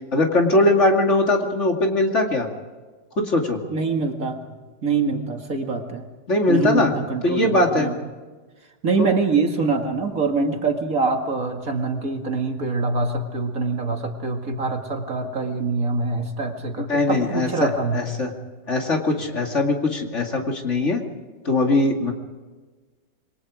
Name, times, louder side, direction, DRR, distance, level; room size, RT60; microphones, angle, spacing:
voice 1, 0.1-2.5 3.2-3.6 6.3-6.9 7.2-7.9 9.0-9.1 16.9-18.3 18.7-21.0 21.4-22.1, left 2 dB, 45° left, 2 dB, 2.7 m, -20 dB
voice 2, 3.7-4.4 4.8-6.0 6.5-8.0 8.8-18.0, right 3 dB, 55° right, 3 dB, 2.5 m, -24 dB
27.5 x 22.5 x 5.0 m, 1.3 s
omnidirectional pair, 1.8 m